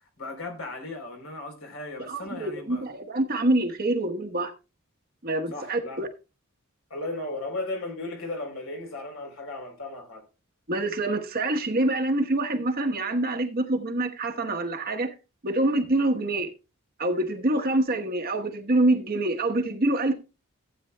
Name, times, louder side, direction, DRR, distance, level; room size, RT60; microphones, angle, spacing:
voice 1, 0.2-2.9 5.5-6.0 6.9-10.2, left 2 dB, 65° left, 3.5 m, -36 dB
voice 2, 2.1-4.5 5.2-6.1 10.7-15.1 15.4-16.5 17.0-20.1, right 2 dB, 40° right, 1.1 m, -26 dB
15.5 x 9.0 x 2.2 m
head